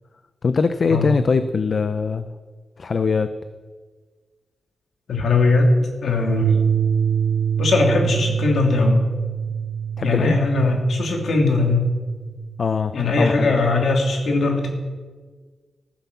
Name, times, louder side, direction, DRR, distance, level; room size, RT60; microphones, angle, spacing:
voice 1, 0.4-2.3 2.8-3.3 10.0-10.4 12.6-13.5, left 4 dB, 45° left, 10 dB, 0.6 m, -21 dB
voice 2, 5.1-5.7 6.0-6.5 7.6-9.0 10.0-11.8 12.9-14.7, left 3 dB, 70° left, 2 dB, 2.7 m, -19 dB
sound 1, 6.3-13.4, right 8 dB, 75° right, 0.7 m, -25 dB
14.5 x 10.0 x 7.0 m, 1.4 s
wide cardioid pair, 160°, 0 cm